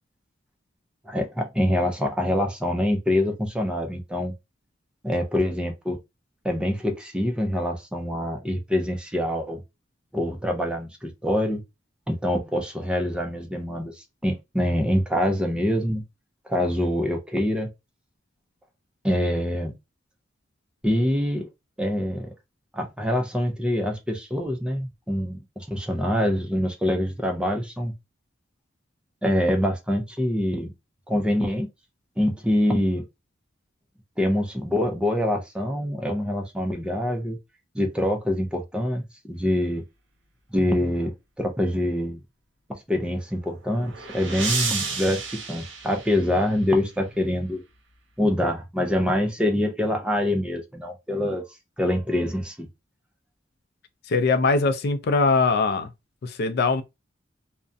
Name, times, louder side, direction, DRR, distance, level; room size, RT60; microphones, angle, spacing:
voice 1, 1.1-4.3 5.0-6.0 6.4-9.6 10.1-11.6 12.1-16.0 16.5-17.7 19.0-19.7 20.8-21.4 21.8-22.3 22.7-27.9 29.2-30.7 31.1-31.7 32.2-33.0 34.2-37.4 37.7-39.8 40.5-42.2 42.7-47.6 48.2-51.4 51.8-52.7, left 1 dB, 5° right, 0.5 m, -25 dB
sound 1, 43.3-46.7, right 4 dB, 70° right, 0.8 m, -32 dB
voice 2, 54.1-55.9 56.2-56.8, left 4 dB, 55° left, 0.4 m, -21 dB
2.4 x 2.1 x 2.5 m
head